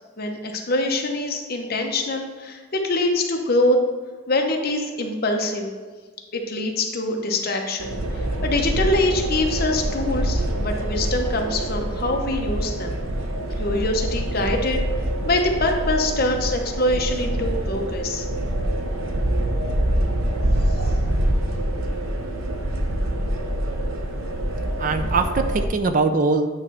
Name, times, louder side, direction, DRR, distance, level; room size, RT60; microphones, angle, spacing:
voice 1, 0.2-3.8 4.3-5.7 6.3-13.0 13.6-14.8 15.2-18.3 20.8-20.9, left 2 dB, 45° left, 2 dB, 0.9 m, -24 dB
sound 1, 7.8-25.7, right 1 dB, 80° right, 0.8 m, -25 dB
voice 2, 24.6-26.5, right 3 dB, 40° right, 8 dB, 0.4 m, -22 dB
8.8 x 3.2 x 5.5 m, 1.5 s
head